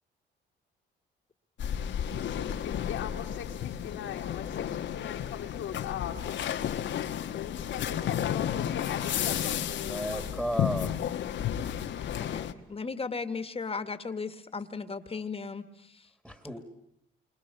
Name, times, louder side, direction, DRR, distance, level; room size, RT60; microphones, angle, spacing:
sound 1, 1.6-12.5, left 10 dB, 70° left, 1.4 m, -32 dB
voice 1, 2.2-10.2, left 9 dB, 85° left, -4 dB, 2.4 m, -40 dB
voice 2, 9.8-10.9 16.2-16.6, equal, 5° right, 7 dB, 2.8 m, -33 dB
voice 3, 12.2-15.6, left 4 dB, 30° left, 10 dB, 1.9 m, -36 dB
28.5 x 24.5 x 7.0 m, 0.76 s
cardioid pair, 90°, 20 cm